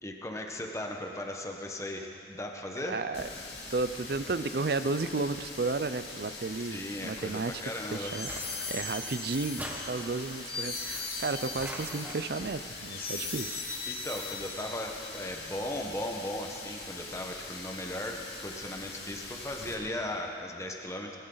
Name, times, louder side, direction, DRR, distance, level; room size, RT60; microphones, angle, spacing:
voice 1, 0.0-3.0 6.6-8.1 13.9-21.2, left 1 dB, 15° left, 2 dB, 1.3 m, -37 dB
voice 2, 2.8-3.3 3.7-7.5 7.9-8.3 8.7-13.6, right 3 dB, 55° right, 12 dB, 0.5 m, -33 dB
Water tap faucet, 3.1-19.8, left 3 dB, 70° left, 2.8 m, -43 dB
sound 1, 7.7-15.0, left 4 dB, 50° left, 3.7 m, -39 dB
sound 2, 8.3-9.1 9.6-10.4 11.6-12.4, equal, 10° right, 1.4 m, -43 dB
21.0 x 16.0 x 4.0 m, 2.7 s
head